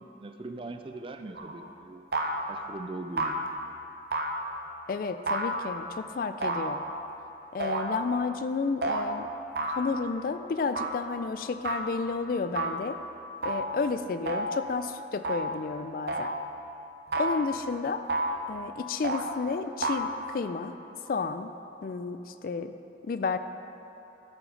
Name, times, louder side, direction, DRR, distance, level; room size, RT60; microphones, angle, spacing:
voice 1, 0.2-2.0 2.5-3.4, right 2 dB, 30° right, 6 dB, 0.4 m, -40 dB
sound 1, 1.4-1.6 2.1-2.7 3.2-3.6 4.1-4.7 5.3-5.9 6.4-7.1 7.6-8.2 8.8-9.0 9.5-10.1 10.7-11.1 11.6-12.0 12.5-12.9 13.4-13.8 14.3-14.7 15.2-15.6 16.1-16.5 17.1-17.6 18.1-18.5 19.0-19.3 19.8-20.1, right 2 dB, 65° right, 0.7 m, -31 dB
voice 2, 4.9-6.8 7.5-9.3 9.6-13.0 13.4-16.3 17.1-18.1 18.5-20.7 21.1-21.5 21.8-22.7 23.0-23.4, left 4 dB, 55° left, 10 dB, 0.3 m, -31 dB
12.5 x 6.3 x 3.9 m, 3.0 s
head